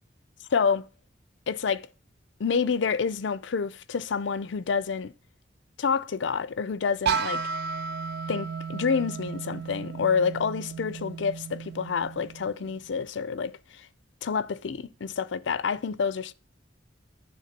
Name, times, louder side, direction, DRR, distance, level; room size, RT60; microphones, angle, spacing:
voice 1, 0.5-0.9 1.5-1.8 2.4-5.1 5.8-7.4 8.3-13.9 14.2-16.3, left 6 dB, 70° left, 0.5 m, -28 dB
sound 1, 7.1-12.9, right 6 dB, 60° right, 0.4 m, -33 dB
9.5 x 3.5 x 6.5 m
head